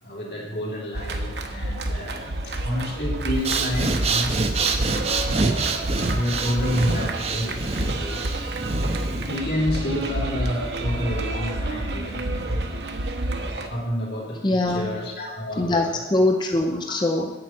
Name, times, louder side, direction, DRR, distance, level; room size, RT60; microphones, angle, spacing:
voice 1, 0.0-4.4 4.9-5.7 6.0-8.3 9.2-12.6 13.4-14.4 14.7-16.0, equal, 65° left, -4 dB, 3.1 m, -29 dB
sound 1, 0.9-13.7, right 1 dB, 65° right, 1.0 m, -29 dB
Breathing, 3.3-9.4, right 3 dB, 35° right, 0.8 m, -26 dB
voice 2, 14.4-14.9 15.6-17.3, left 2 dB, 25° left, 3 dB, 0.6 m, -22 dB
8.8 x 7.7 x 5.9 m, 1.1 s
head